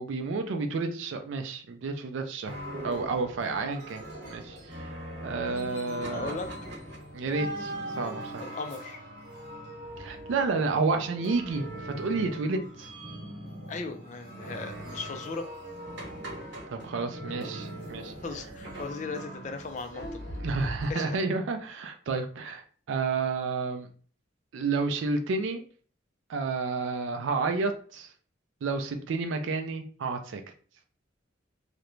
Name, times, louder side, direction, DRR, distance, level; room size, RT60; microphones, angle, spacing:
voice 1, 0.0-2.6 2.8-4.0 4.3-6.4 7.1-8.5 10.0-12.9 16.7-18.1 20.4-23.9 24.5-25.6 26.3-28.1 28.6-30.4, right 4 dB, 80° right, 6 dB, 0.4 m, -30 dB
sound 1, 2.4-20.9, right 1 dB, 60° right, 0.8 m, -40 dB
voice 2, 6.0-6.5 8.4-9.0 13.7-15.5 18.2-20.2 20.9-21.2, left 4 dB, 40° left, 6 dB, 0.3 m, -37 dB
2.4 x 2.1 x 3.0 m, 0.43 s
head